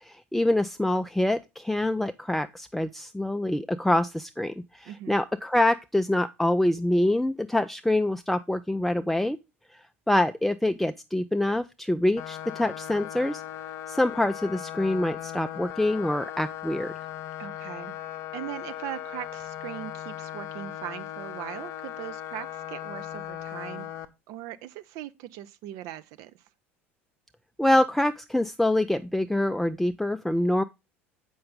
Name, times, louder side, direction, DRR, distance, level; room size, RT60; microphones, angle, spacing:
voice 1, 0.0-9.4 10.1-13.4 13.9-16.9 27.6-30.6, left 1 dB, ahead, 0.4 m, -25 dB
voice 2, 4.9-5.2 17.4-17.9 18.3-23.9 24.3-26.4, right 13 dB, 55° right, 0.7 m, -40 dB
sound 1, 12.2-24.1, left 11 dB, 50° left, 0.6 m, -38 dB
7.7 x 5.4 x 3.7 m
figure-of-eight pair, 70°, 7 cm